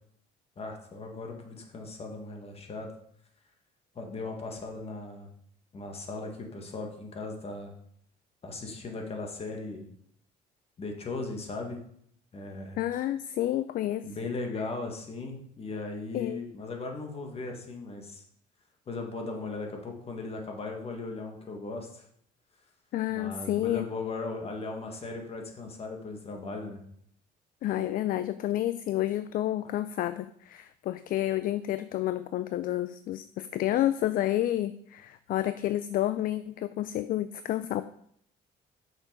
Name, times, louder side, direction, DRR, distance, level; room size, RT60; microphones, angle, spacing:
voice 1, 0.6-2.9 4.0-5.3 5.7-7.7 8.4-9.9 10.8-11.8 12.3-12.8 14.0-18.2 18.9-22.1 23.1-26.8, left 3 dB, 35° left, 2 dB, 1.8 m, -37 dB
voice 2, 12.8-14.1 16.1-16.4 22.9-23.9 27.6-37.8, left 13 dB, 55° left, 13 dB, 0.4 m, -30 dB
6.4 x 6.3 x 5.1 m, 0.68 s
cardioid pair, 110°, 17 cm